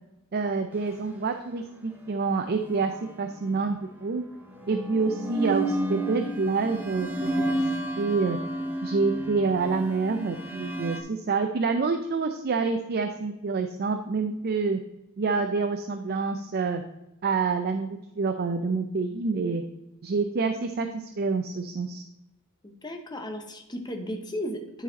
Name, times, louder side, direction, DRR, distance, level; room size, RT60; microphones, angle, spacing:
voice 1, 0.3-2.9 3.2-4.2 4.7-7.4 8.0-8.4 8.8-14.8 15.2-16.8 17.2-19.6 20.0-22.0, right 4 dB, 45° right, 6 dB, 0.5 m, -27 dB
sound 1, 2.6-3.6 4.4-11.0, right 1 dB, 10° right, 0.9 m, -31 dB
voice 2, 22.6-24.8, equal, 20° left, 4 dB, 1.0 m, -35 dB
10.0 x 4.1 x 4.0 m, 0.93 s
head